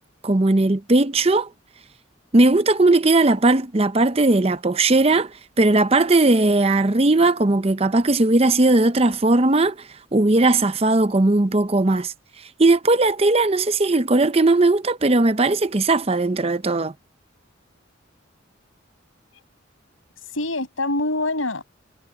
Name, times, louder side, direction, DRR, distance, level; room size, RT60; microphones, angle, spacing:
voice 1, 0.2-1.5 2.3-5.3 5.6-12.1 12.6-16.9, right 2 dB, 30° right, 0.7 m, -18 dB
voice 2, 20.2-21.6, left 2 dB, 90° left, 6.3 m, -25 dB
head